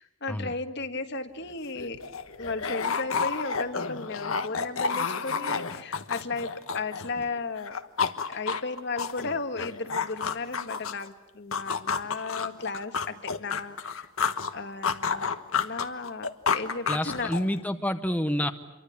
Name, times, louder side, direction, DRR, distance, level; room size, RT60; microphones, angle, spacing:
voice 1, 0.0-2.0 2.4-7.8 8.3-14.1 14.5-15.2 15.6-17.3, left 3 dB, 55° left, 8 dB, 1.6 m, -35 dB
sound 1, 1.4-1.5 1.8-7.3 7.6-11.1 11.5-14.5 14.8-17.6, left 5 dB, 80° left, 1.3 m, -30 dB
voice 2, 16.9-18.5, equal, 5° left, 7 dB, 0.8 m, -28 dB
27.5 x 24.0 x 8.5 m, 1.0 s
head